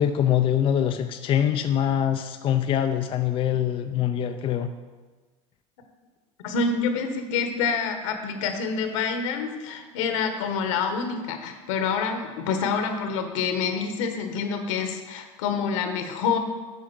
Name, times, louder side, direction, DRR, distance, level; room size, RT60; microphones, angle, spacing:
voice 1, 0.0-4.7, left 10 dB, 35° left, 6 dB, 0.5 m, -24 dB
voice 2, 6.4-16.4, left 5 dB, 80° left, 6 dB, 1.3 m, -27 dB
8.7 x 4.9 x 6.1 m, 1.3 s
supercardioid pair, 115°, 16 cm